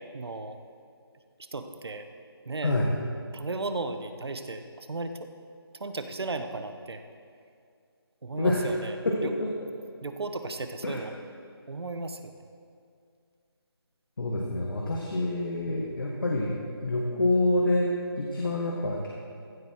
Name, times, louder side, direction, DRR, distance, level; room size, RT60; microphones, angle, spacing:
voice 1, 0.1-0.6 1.4-2.1 2.4-2.8 3.3-5.3 5.8-7.0 8.2-9.0 9.2-9.3 10.0-11.1 11.7-12.3 15.7-15.9, right 3 dB, 75° right, 8 dB, 0.9 m, -35 dB
voice 2, 8.4-8.8 9.0-9.5 10.8-11.0 14.2-16.5 16.8-19.1, left 2 dB, 55° left, -2 dB, 1.6 m, -27 dB
15.0 x 8.0 x 4.5 m, 2.3 s
figure-of-eight pair, 175°, 13 cm